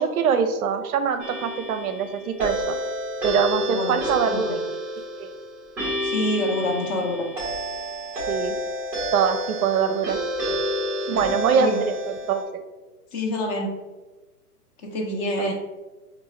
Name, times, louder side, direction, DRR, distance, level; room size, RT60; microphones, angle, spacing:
voice 1, 0.0-2.7 3.2-4.6 5.2-5.3 8.3-8.6 9.1-10.2 11.1-12.0 12.3-12.6 15.4-15.5, right 7 dB, 65° right, 9 dB, 0.5 m, -23 dB
sound 1, 1.2-12.4, equal, 5° right, 0.4 m, -29 dB
voice 2, 3.7-4.5 6.0-7.3 11.1-11.8 13.1-13.7 14.8-15.5, left 1 dB, 30° left, 1 dB, 0.7 m, -27 dB
4.5 x 2.5 x 3.1 m, 1.2 s
hypercardioid pair, 120°, 47 cm